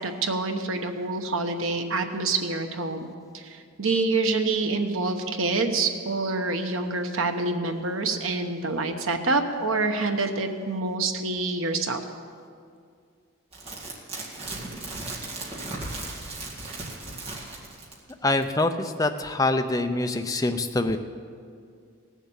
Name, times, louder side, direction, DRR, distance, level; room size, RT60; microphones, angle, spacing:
voice 1, 0.0-3.1 3.3-12.0, right 3 dB, 85° right, 6 dB, 1.1 m, -27 dB
sound 1, 13.5-18.1 18.4-18.5, right 2 dB, 30° right, 2.0 m, -36 dB
voice 2, 18.2-21.0, left 2 dB, 15° left, 7 dB, 0.5 m, -25 dB
18.0 x 7.3 x 7.2 m, 2.2 s
head